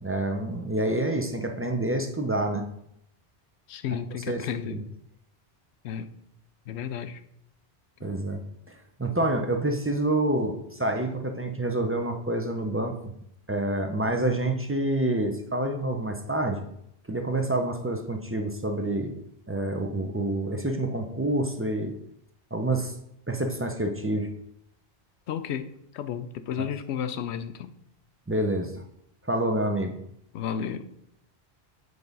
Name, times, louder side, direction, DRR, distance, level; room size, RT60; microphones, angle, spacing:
voice 1, 0.0-2.6 4.3-4.8 8.0-8.4 8.7-13.1 13.5-16.6 17.1-19.1 19.5-21.9 22.5-22.9 23.3-24.3 28.3-28.7 29.3-30.0, right 1 dB, 15° right, 0.5 m, -27 dB
voice 2, 3.7-4.8 5.8-6.1 6.7-7.2 25.3-27.7 30.3-30.9, left 8 dB, 85° left, 0.9 m, -33 dB
7.9 x 3.5 x 5.3 m
omnidirectional pair, 1.1 m